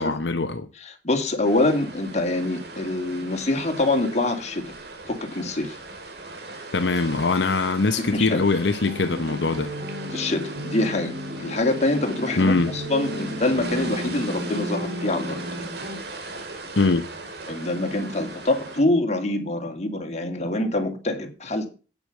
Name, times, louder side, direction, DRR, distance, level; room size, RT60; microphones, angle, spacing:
voice 1, 0.0-0.7 6.7-9.7 12.4-12.7 16.8-17.1, left 3 dB, 85° left, 0.9 m, -22 dB
voice 2, 0.8-4.6 5.0-5.8 8.0-8.4 10.1-15.4 17.5-21.7, left 2 dB, 40° left, 2.3 m, -25 dB
sound 1, 1.4-18.8, right 3 dB, 65° right, 2.4 m, -39 dB
sound 2, 8.8-16.0, equal, 50° right, 3.4 m, -33 dB
8.6 x 8.0 x 6.5 m
head